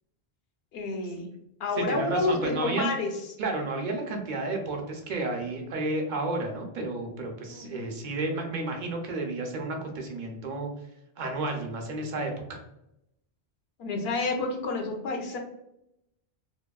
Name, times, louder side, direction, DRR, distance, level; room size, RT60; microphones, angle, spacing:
voice 1, 0.7-1.3 1.6-3.1 7.1-7.2 7.5-7.9 13.8-15.4, left 3 dB, 75° left, 3 dB, 0.8 m, -29 dB
voice 2, 1.8-2.9 3.4-10.7 11.2-12.6, right 2 dB, 55° right, 2 dB, 0.6 m, -32 dB
2.8 x 2.5 x 2.2 m, 0.83 s
omnidirectional pair, 1.1 m